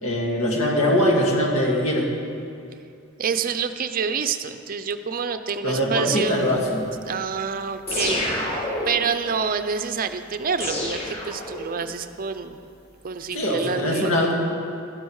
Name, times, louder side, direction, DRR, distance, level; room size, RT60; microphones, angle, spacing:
voice 1, 0.0-2.1 5.6-6.9 13.3-14.4, left 1 dB, 80° left, -1 dB, 2.2 m, -22 dB
voice 2, 3.2-6.4 7.1-12.6 13.0-14.4, right 6 dB, 45° right, 9 dB, 0.5 m, -27 dB
sound 1, 7.9-9.1 10.6-11.9, left 1 dB, 30° left, 2.1 m, -28 dB
12.0 x 12.0 x 4.7 m, 2.4 s
head